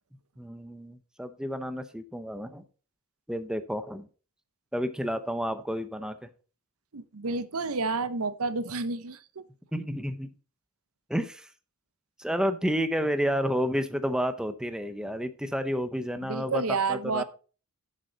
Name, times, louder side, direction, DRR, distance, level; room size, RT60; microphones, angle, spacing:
voice 1, 0.4-2.6 3.3-4.1 4.7-6.2 9.7-10.3 11.1-11.5 12.2-16.6 16.9-17.2, equal, 5° right, 0.7 m, -30 dB
voice 2, 6.9-9.4 16.2-17.2, right 4 dB, 70° right, 0.7 m, -30 dB
11.0 x 6.5 x 3.9 m
head